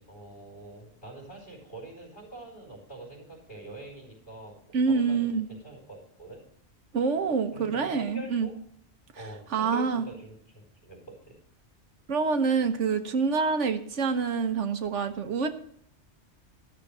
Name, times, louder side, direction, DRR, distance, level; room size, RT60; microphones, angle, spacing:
voice 1, 0.0-4.5 4.9-6.4 7.5-8.5 9.1-11.3, right 2 dB, 55° left, -4 dB, 4.8 m, -45 dB
voice 2, 4.7-5.5 6.9-8.5 9.5-10.1 12.1-15.5, right 5 dB, 80° right, 8 dB, 1.3 m, -26 dB
12.5 x 6.6 x 6.7 m, 0.66 s
omnidirectional pair, 1.2 m